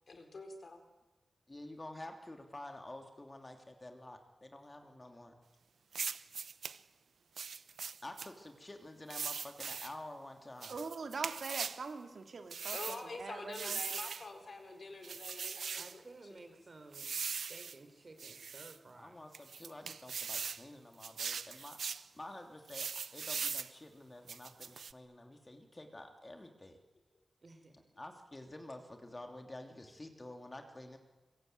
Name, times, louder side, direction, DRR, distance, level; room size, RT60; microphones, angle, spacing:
voice 1, 0.1-0.8 12.7-15.8, left 3 dB, 50° left, 6 dB, 4.6 m, -46 dB
voice 2, 1.5-5.3 8.0-10.8 19.0-26.8 28.0-31.0, left 1 dB, 20° left, 5 dB, 2.9 m, -49 dB
sound 1, 5.9-6.8 7.4-8.3 9.1-9.9 10.6-11.8 12.5-13.0 13.5-14.3 15.0-15.9 16.9-17.8 18.2-18.8 19.3-20.6 21.0-22.0 22.7-23.7 24.3-24.9, right 6 dB, 85° right, 0.9 m, -40 dB
voice 3, 10.7-12.8 13.2-13.8, right 4 dB, 60° right, 6 dB, 2.6 m, -42 dB
voice 4, 15.8-19.2 27.4-27.8, right 3 dB, 35° right, 7 dB, 4.2 m, -55 dB
25.0 x 23.5 x 9.5 m, 1.1 s
wide cardioid pair, 145°, 0 cm